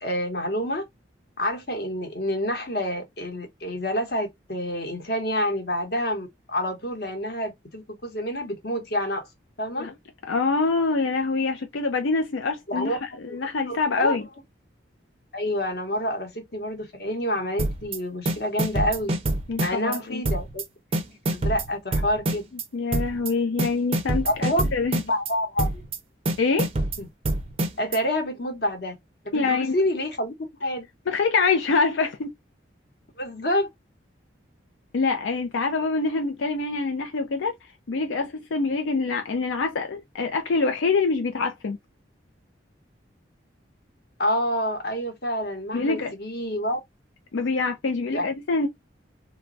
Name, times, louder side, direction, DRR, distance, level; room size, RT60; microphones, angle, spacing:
voice 1, 0.0-0.8 1.4-9.3 9.6-9.9 12.7-13.0 13.3-13.4 13.7-14.2 15.3-19.2 19.6-20.6 21.3-22.4 24.2-24.6 25.0-25.8 27.0-27.1 27.8-28.9 29.2-30.9 33.2-33.7 44.2-46.8 48.1-48.3, equal, 55° left, 0.9 m, -28 dB
voice 2, 10.3-13.0 13.2-14.2 19.5-20.2 22.7-25.0 26.4-26.7 29.3-29.7 31.1-32.3 34.9-37.5 37.9-41.8 45.7-46.1 47.3-48.7, left 4 dB, 85° left, 0.5 m, -25 dB
sound 1, 17.6-18.0 18.3-20.0 20.3-20.6 20.9-22.6 22.9-23.3 23.6-25.3 25.6-26.0 26.3-28.0, right 1 dB, 30° right, 0.4 m, -26 dB
3.0 x 2.3 x 2.5 m
head